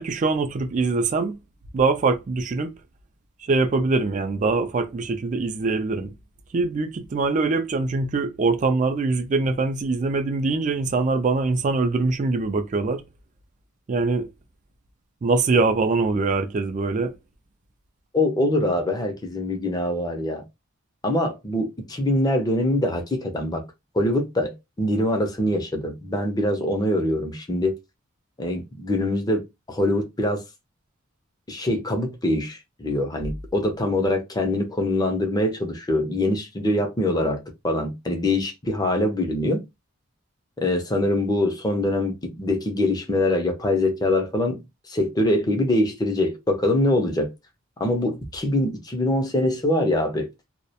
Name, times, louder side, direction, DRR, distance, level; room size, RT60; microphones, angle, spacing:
voice 1, 0.0-1.4 1.7-2.7 3.4-6.1 6.5-13.0 13.9-14.3 15.2-17.1, right 3 dB, 35° right, 0.3 m, -23 dB
voice 2, 18.1-20.4 21.0-23.6 23.9-27.8 28.4-29.4 29.7-30.4 31.5-39.6 40.6-44.6 44.9-47.3 47.8-50.3, left 1 dB, 20° left, 0.5 m, -24 dB
2.3 x 2.0 x 2.7 m
head